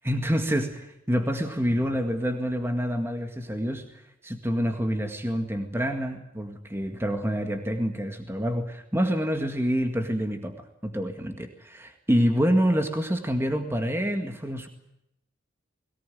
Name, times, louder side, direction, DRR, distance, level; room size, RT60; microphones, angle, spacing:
voice 1, 0.0-14.7, equal, 15° right, 5 dB, 2.0 m, -27 dB
21.5 x 19.0 x 9.3 m, 0.82 s
head